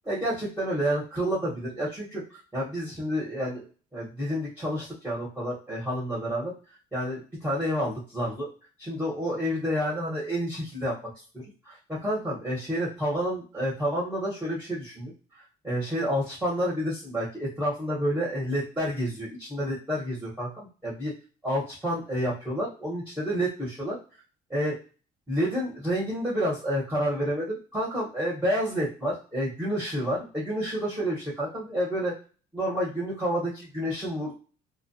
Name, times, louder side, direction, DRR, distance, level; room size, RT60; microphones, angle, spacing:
voice 1, 0.1-3.6 3.9-6.5 6.9-8.5 8.8-10.9 11.6-15.1 15.6-21.1 21.4-24.0 24.5-24.8 25.3-32.1 32.5-34.3, equal, 10° right, -7 dB, 1.0 m, -29 dB
2.2 x 2.1 x 2.6 m, 0.36 s
cardioid pair, 110°, 17 cm